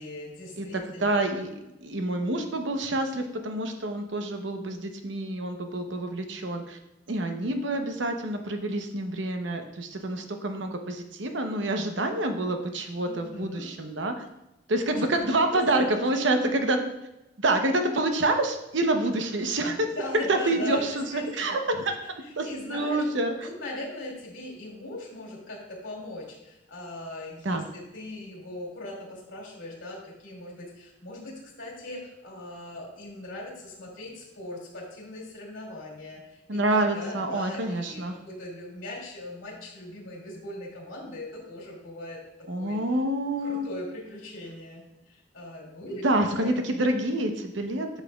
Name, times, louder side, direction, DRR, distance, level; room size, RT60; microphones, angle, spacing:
voice 1, 0.0-1.3 13.1-13.7 14.9-15.1 15.5-16.2 19.9-21.6 22.0-23.0 23.4-42.2 42.5-42.8 43.4-46.0 46.4-46.5, left 1 dB, 85° left, -3 dB, 2.4 m, -40 dB
voice 2, 0.6-1.5 1.8-6.8 7.1-14.1 14.7-16.8 17.4-19.9 20.3-21.0 21.4-22.0 22.4-23.3 27.4-27.6 36.5-38.2 42.5-43.7 46.0-48.0, right 2 dB, 70° right, 5 dB, 0.8 m, -27 dB
10.0 x 5.7 x 2.3 m, 0.93 s
head